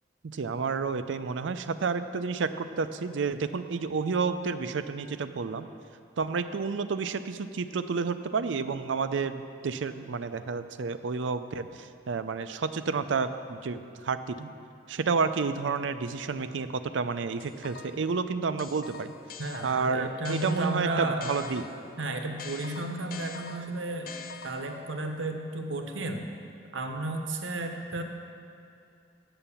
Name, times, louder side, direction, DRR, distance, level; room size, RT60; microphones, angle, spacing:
voice 1, 0.2-5.7 6.2-14.5 14.9-19.1 19.6-21.6, right 5 dB, 70° right, 11 dB, 0.5 m, -30 dB
sound 1, 17.4-18.1 18.6-21.9 22.4-24.9, left 6 dB, 50° left, 0.5 m, -44 dB
voice 2, 19.4-21.3 22.0-26.2 26.7-28.0, right 2 dB, 85° right, 4 dB, 1.0 m, -33 dB
9.0 x 7.7 x 7.0 m, 2.5 s
head